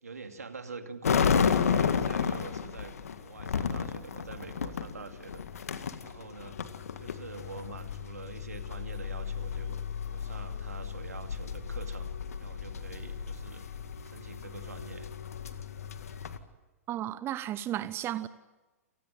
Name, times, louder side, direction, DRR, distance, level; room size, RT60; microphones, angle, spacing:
voice 1, 0.0-5.4 6.0-6.6 7.0-9.8 10.1-12.1 12.4-13.6 14.0-15.1, right 4 dB, 80° right, 2.6 m, -45 dB
sound 1, 1.0-16.4, left 7 dB, 70° left, 1.9 m, -33 dB
voice 2, 16.9-18.3, right 12 dB, 30° right, 0.9 m, -34 dB
28.5 x 19.5 x 8.9 m
figure-of-eight pair, 105°, 8 cm